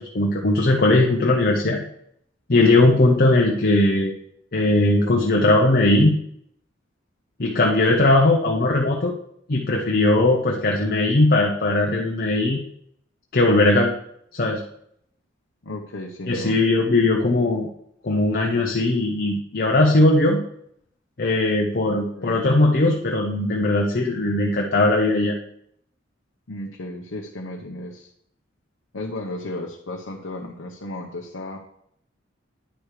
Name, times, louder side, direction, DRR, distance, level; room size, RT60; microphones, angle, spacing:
voice 1, 0.0-1.8 2.5-4.1 4.5-6.2 7.4-9.1 9.5-12.6 13.3-13.9 14.4-14.6 16.3-17.7 18.0-20.4 21.2-25.3, left 2 dB, 50° left, 0 dB, 0.9 m, -19 dB
voice 2, 15.6-16.6 21.8-22.4 26.5-28.1 28.9-31.6, left 1 dB, 80° left, 0 dB, 1.0 m, -34 dB
10.0 x 4.9 x 4.9 m, 0.71 s
head